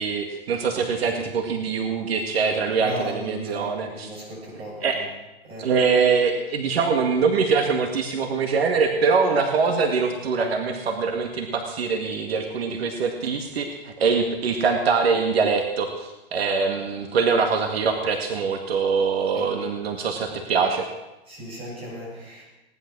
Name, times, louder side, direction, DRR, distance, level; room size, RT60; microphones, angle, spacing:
voice 1, 0.0-4.1 4.8-5.0 5.6-20.9, right 5 dB, 75° right, 4 dB, 2.0 m, -23 dB
voice 2, 2.7-5.0 5.4-5.7 19.3-19.5 20.0-20.1 21.3-22.4, right 1 dB, 20° right, -4 dB, 7.1 m, -36 dB
18.5 x 11.5 x 6.2 m, 0.99 s
hypercardioid pair, 145°, 31 cm